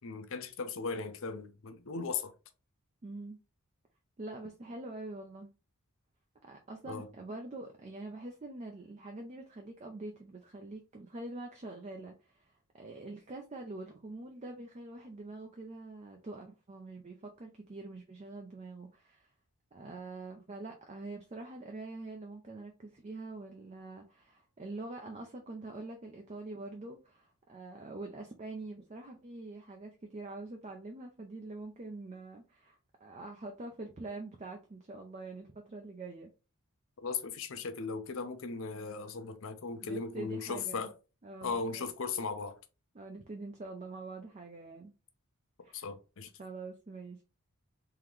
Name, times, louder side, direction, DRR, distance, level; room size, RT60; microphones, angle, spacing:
voice 1, 0.0-2.3 6.9-7.1 37.0-40.9 41.4-42.6 45.7-46.3, left 4 dB, 60° left, 0.6 m, -37 dB
voice 2, 3.0-3.4 4.2-5.5 6.4-19.3 19.7-36.3 39.8-40.9 41.2-41.8 42.9-44.9 45.6-45.9 46.4-47.2, right 2 dB, 30° right, 0.5 m, -45 dB
3.7 x 2.9 x 3.2 m
head